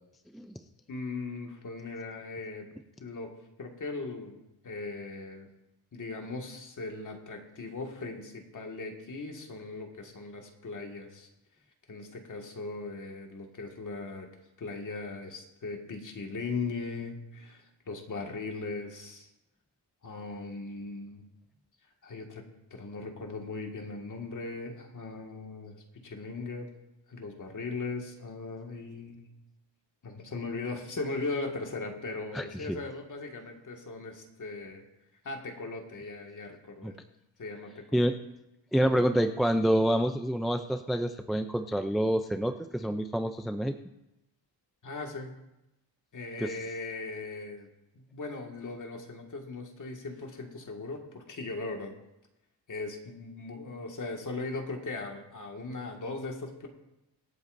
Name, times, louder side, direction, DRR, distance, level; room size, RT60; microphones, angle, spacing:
voice 1, 0.9-2.7 3.0-3.3 3.6-4.4 4.6-5.5 5.9-11.3 11.9-14.3 14.6-19.3 20.0-21.2 22.0-22.4 22.7-26.7 27.1-29.3 30.0-34.8 35.2-37.0 37.4-38.1 38.8-39.0 44.8-45.3 46.1-47.7 47.9-51.9 52.7-56.7, left 3 dB, 40° left, 2 dB, 2.0 m, -38 dB
voice 2, 32.3-32.8 36.8-36.9 37.9-38.1 38.7-43.7 46.4-46.5, equal, ahead, 7 dB, 0.4 m, -27 dB
25.0 x 8.4 x 2.6 m, 0.92 s
cardioid pair, 125°, 46 cm